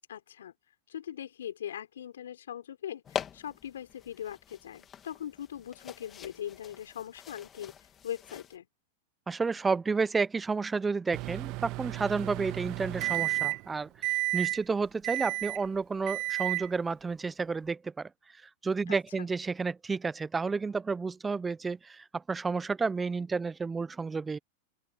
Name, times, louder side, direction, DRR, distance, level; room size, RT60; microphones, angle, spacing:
voice 1, 0.1-0.5 0.9-7.7 8.0-8.7 18.9-19.3, left 10 dB, 75° left, 3.8 m, -41 dB
sound 1, 3.0-8.6, left 9 dB, 30° left, 3.0 m, -43 dB
voice 2, 9.3-18.1 18.4-24.4, right 4 dB, 15° right, 0.9 m, -31 dB
Microwave oven, 11.1-13.7 14.0-14.6 15.0-15.6 16.1-16.7, right 23 dB, 45° right, 0.8 m, -32 dB
open air
hypercardioid pair, 100°, 0 cm